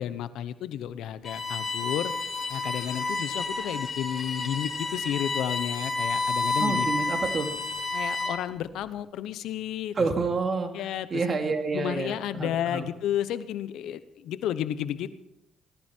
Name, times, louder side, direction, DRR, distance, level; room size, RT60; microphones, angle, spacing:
voice 1, 0.0-2.1 2.5-6.9 7.9-10.1 10.7-11.2 11.7-15.1, left 10 dB, 85° left, 14 dB, 0.9 m, -32 dB
Bowed string instrument, 1.2-8.5, left 3 dB, 35° left, 3.8 m, -30 dB
voice 2, 6.6-7.5 9.9-10.7 11.1-12.9, right 4 dB, 40° right, 4 dB, 2.7 m, -28 dB
19.0 x 14.5 x 4.5 m, 0.83 s
cardioid pair, 90°, 0 cm